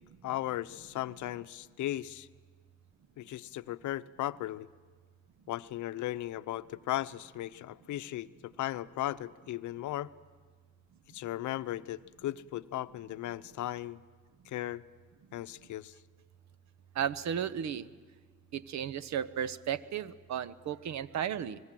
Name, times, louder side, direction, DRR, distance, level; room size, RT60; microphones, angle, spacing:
voice 1, 0.2-2.3 3.2-4.7 5.5-8.3 8.6-10.1 11.1-14.0 14.5-14.8 15.3-15.9, left 14 dB, 75° left, 13 dB, 0.7 m, -36 dB
voice 2, 16.9-17.9 18.5-21.6, right 9 dB, 65° right, 16 dB, 0.9 m, -34 dB
25.5 x 20.5 x 7.6 m, 1.5 s
cardioid pair, 90°, 30 cm